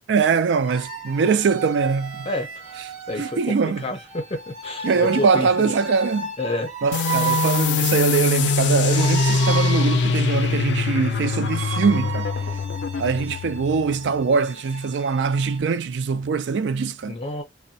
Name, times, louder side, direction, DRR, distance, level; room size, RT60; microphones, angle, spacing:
voice 1, 0.1-2.3 3.2-3.8 4.8-6.3 6.8-12.3 13.0-17.1, right 5 dB, 75° right, 0.4 m, -22 dB
sound 1, 0.6-15.6, right 5 dB, 40° right, 0.9 m, -34 dB
voice 2, 2.2-2.7 3.1-5.7 6.4-6.7 17.1-17.4, left 1 dB, 35° left, 0.6 m, -29 dB
sound 2, 6.9-14.2, left 4 dB, 75° left, 0.4 m, -23 dB
2.6 x 2.1 x 2.6 m
head